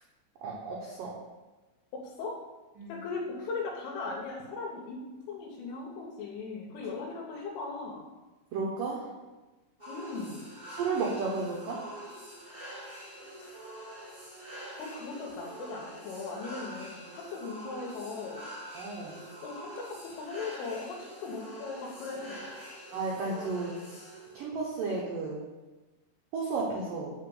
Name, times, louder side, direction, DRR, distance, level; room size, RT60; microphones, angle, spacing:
voice 1, 0.4-1.1 2.8-3.0 8.5-9.1 10.8-11.8 18.7-19.2 22.9-23.7 24.3-25.4 26.3-27.1, right 4 dB, 85° right, -2 dB, 1.9 m, -33 dB
voice 2, 1.9-2.4 2.9-5.0 5.3-8.1 9.9-10.5 13.4-13.5 14.8-18.5 19.4-22.4, left 4 dB, 80° left, -4 dB, 3.7 m, -38 dB
sound 1, 9.8-24.4, right 1 dB, 15° right, 2.0 m, -45 dB
9.3 x 3.7 x 7.1 m, 1.2 s
omnidirectional pair, 5.7 m